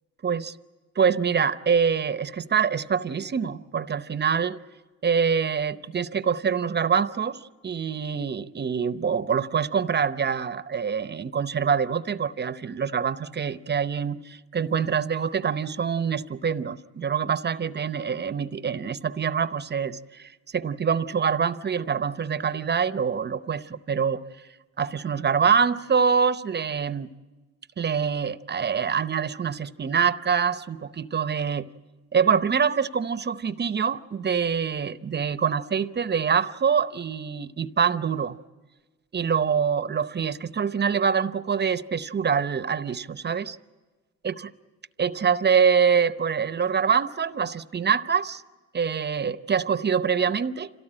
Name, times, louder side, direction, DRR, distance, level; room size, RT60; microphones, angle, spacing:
voice 1, 0.2-0.5 1.0-4.6 5.0-24.2 24.8-27.1 27.8-31.7 32.1-38.4 39.1-43.6 44.2-44.3 45.0-48.4 48.7-50.7, right 6 dB, 35° right, 0.8 m, -25 dB
26.5 x 18.0 x 8.8 m
cardioid pair, 90°, 30 cm